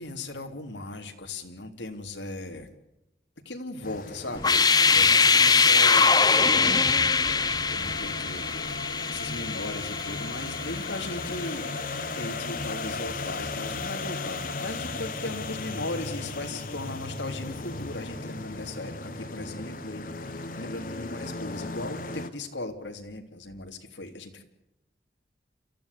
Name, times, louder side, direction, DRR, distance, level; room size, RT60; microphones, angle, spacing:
voice 1, 0.0-2.7 3.4-6.9 7.7-8.8 9.1-11.7 12.2-24.4, left 2 dB, 90° left, 4 dB, 3.3 m, -37 dB
sound 1, 3.8-22.3, left 3 dB, 50° left, 1.8 m, -36 dB
sound 2, 4.4-11.2, left 5 dB, 20° left, 1.0 m, -22 dB
29.5 x 15.0 x 8.4 m, 0.90 s
head